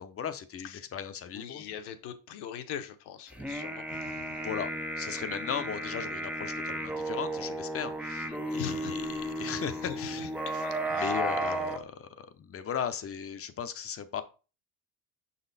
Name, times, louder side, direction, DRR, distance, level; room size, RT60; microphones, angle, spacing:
voice 1, 0.0-1.6 4.4-14.2, left 8 dB, 30° left, 10 dB, 0.7 m, -37 dB
voice 2, 1.3-4.2 8.2-8.9 9.8-10.3 10.6-11.1, left 9 dB, 65° left, 8 dB, 1.1 m, -42 dB
sound 1, 3.3-11.8, right 1 dB, 5° right, 0.5 m, -34 dB
6.2 x 4.1 x 4.0 m, 0.34 s
cardioid pair, 120°, 43 cm